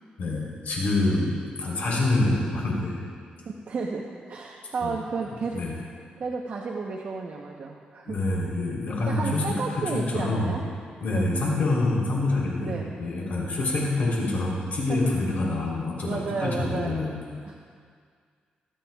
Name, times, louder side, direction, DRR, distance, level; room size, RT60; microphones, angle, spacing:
voice 1, 0.2-3.0 4.8-4.9 5.5-5.8 8.0-9.6 9.9-10.6 11.0-17.2, left 2 dB, 65° left, -4 dB, 3.3 m, -26 dB
voice 2, 3.7-5.6 6.2-8.2 9.1-10.6 11.1-11.4 12.6-12.9 14.9-15.1 16.0-17.1 17.4-17.5, right 4 dB, 55° right, -1 dB, 0.8 m, -32 dB
23.0 x 8.8 x 2.3 m, 2.1 s
cardioid pair, 105°, 3 cm